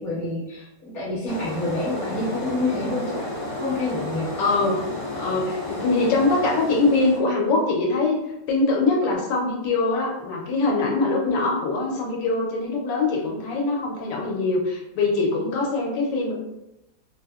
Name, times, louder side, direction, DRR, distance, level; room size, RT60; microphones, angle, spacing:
voice 1, 0.0-3.3 3.5-4.3, left 2 dB, ahead, -10 dB, 0.6 m, -28 dB
sound 1, 1.3-7.2, left 1 dB, 60° left, 1.0 m, -32 dB
voice 2, 4.4-4.8 5.1-8.2 8.5-16.3, left 3 dB, 90° left, -1 dB, 1.3 m, -23 dB
3.2 x 2.0 x 2.3 m, 0.88 s
omnidirectional pair, 1.8 m